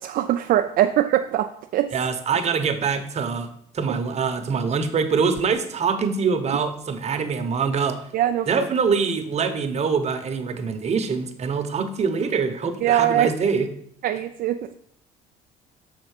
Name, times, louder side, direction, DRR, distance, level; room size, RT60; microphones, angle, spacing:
voice 1, 0.0-1.9 8.1-8.7 12.8-13.3 14.0-14.7, right 12 dB, 60° right, 7 dB, 0.4 m, -22 dB
voice 2, 1.9-3.5 3.7-8.0 8.5-13.7, right 5 dB, 40° right, 7 dB, 0.9 m, -24 dB
6.3 x 4.4 x 6.5 m, 0.68 s
cardioid pair, 110°, 17 cm